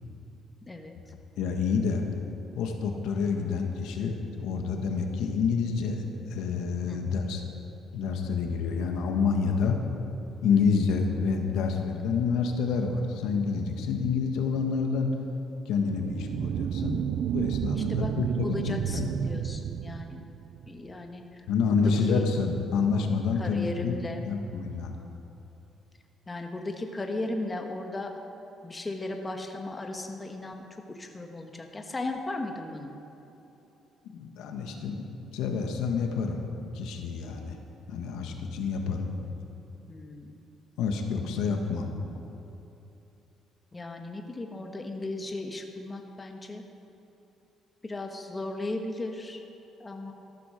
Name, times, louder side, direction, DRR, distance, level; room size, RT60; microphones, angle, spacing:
voice 1, 0.6-0.9 6.9-7.1 10.5-10.9 17.7-18.1 18.4-20.3 20.7-21.5 21.7-22.3 23.4-24.2 26.3-28.1 28.6-33.0 39.9-40.4 43.7-46.7 47.8-49.4 49.8-50.1, left 2 dB, 20° left, 4 dB, 1.3 m, -36 dB
voice 2, 1.4-2.0 2.6-6.0 6.3-7.4 7.9-9.8 10.4-15.1 15.7-17.0 17.3-19.1 21.5-24.0 24.3-24.9 34.1-35.0 35.3-36.4 36.7-37.6 37.9-39.1 40.8-41.9, left 5 dB, 85° left, 3 dB, 1.5 m, -28 dB
sound 1, 15.8-20.8, right 10 dB, 65° right, 0.3 m, -31 dB
14.0 x 12.5 x 5.1 m, 3.0 s
cardioid pair, 100°, 0 cm